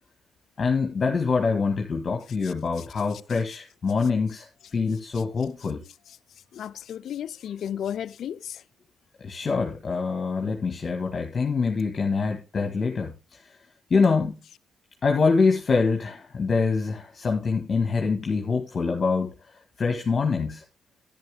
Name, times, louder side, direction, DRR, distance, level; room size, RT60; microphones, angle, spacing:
voice 1, 0.6-5.8 9.2-13.4 13.9-14.4 15.0-19.3 19.8-20.6, left 4 dB, 40° left, 1.7 m, -25 dB
voice 2, 6.5-8.6, left 9 dB, 65° left, 0.5 m, -34 dB
10.5 x 10.5 x 3.6 m
cardioid pair, 90°, 0 cm